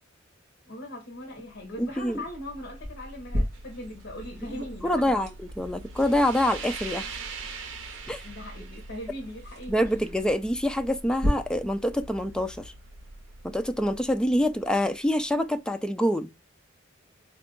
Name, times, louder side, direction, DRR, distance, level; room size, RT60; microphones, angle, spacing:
voice 1, 0.6-5.3 8.2-9.9, left 1 dB, 60° left, 0.8 m, -40 dB
sound 1, 1.4-15.5, right 3 dB, 80° right, 0.7 m, -43 dB
voice 2, 1.8-2.2 4.8-7.1 8.1-8.2 9.7-12.7 13.4-16.3, left 1 dB, 5° left, 0.3 m, -26 dB
sound 2, 2.8-11.3, equal, 60° right, 2.1 m, -38 dB
3.6 x 2.3 x 3.7 m
head